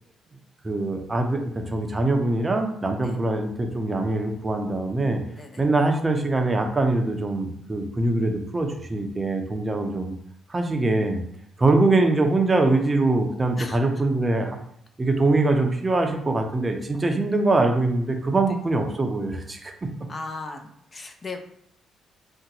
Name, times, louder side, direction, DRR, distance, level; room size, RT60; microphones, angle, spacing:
voice 1, 0.6-5.2 5.6-10.1 10.5-11.2 11.6-14.6 15.0-19.7, right 2 dB, 25° right, 4 dB, 0.5 m, -23 dB
voice 2, 20.1-21.4, left 3 dB, 35° left, 5 dB, 0.4 m, -36 dB
2.7 x 2.1 x 3.9 m, 0.72 s
cardioid pair, 90°, 0 cm